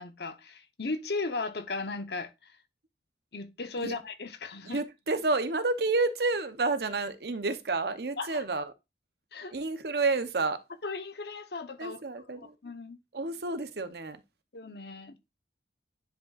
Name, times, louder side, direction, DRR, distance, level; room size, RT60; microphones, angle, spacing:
voice 1, 0.0-2.6 3.3-4.8 8.2-8.4 9.3-9.5 10.8-12.0 12.6-13.0 14.5-15.3, left 3 dB, 65° left, 0.9 m, -36 dB
voice 2, 4.6-8.7 9.5-10.6 11.8-12.5 13.1-14.2, right 3 dB, 60° right, 0.8 m, -30 dB
10.0 x 5.1 x 2.4 m
head